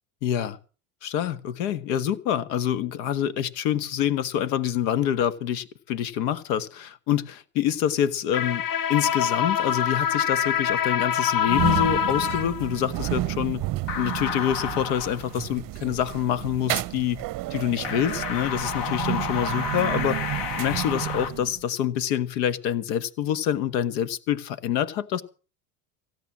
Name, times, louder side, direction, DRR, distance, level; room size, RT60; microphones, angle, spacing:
voice 1, 0.2-0.6 1.0-8.6 8.9-13.6 13.9-17.2 17.5-20.2 20.6-25.2, left 10 dB, 80° left, 1.4 m, -26 dB
sound 1, 8.3-12.8 13.9-15.2 17.9-21.3, left 8 dB, 55° left, 1.9 m, -27 dB
sound 2, 11.4-21.6, right 17 dB, 45° right, 0.6 m, -31 dB
16.5 x 9.0 x 7.3 m
supercardioid pair, 95°, 48 cm